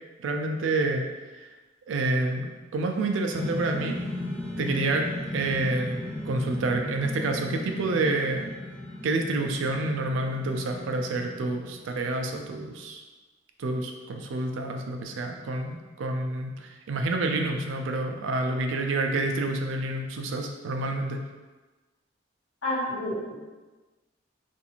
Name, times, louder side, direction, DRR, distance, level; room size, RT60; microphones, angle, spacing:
voice 1, 0.2-1.1 1.4-1.5 1.9-4.0 4.6-8.6 9.0-13.0 13.6-21.2, right 2 dB, 75° right, 4 dB, 0.3 m, -28 dB
sound 1, 3.3-11.9, left 1 dB, 5° left, 0.7 m, -36 dB
voice 2, 22.6-23.3, left 1 dB, 80° left, -8 dB, 1.1 m, -29 dB
2.5 x 2.4 x 2.9 m, 1.2 s
head